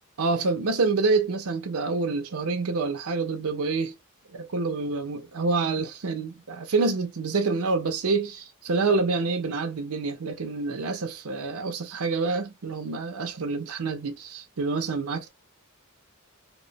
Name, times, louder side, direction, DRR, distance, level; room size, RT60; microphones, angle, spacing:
voice 1, 0.2-3.9 4.3-15.3, right 4 dB, 80° right, 0.6 m, -27 dB
2.9 x 2.0 x 3.9 m
head